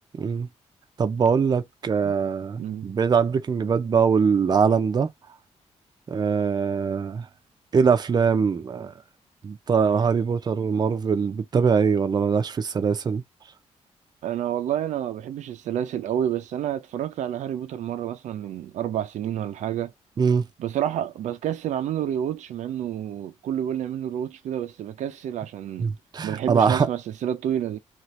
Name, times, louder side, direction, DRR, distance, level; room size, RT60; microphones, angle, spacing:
voice 1, 0.2-0.5 1.0-5.1 6.1-7.3 7.7-8.9 9.4-13.2 20.2-20.5 25.8-26.9, right 6 dB, 35° right, 0.5 m, -22 dB
voice 2, 2.6-2.9 14.2-19.9 20.6-25.9 26.2-27.8, right 10 dB, 85° right, 0.5 m, -29 dB
2.8 x 2.4 x 3.1 m
cardioid pair, 110°, 12 cm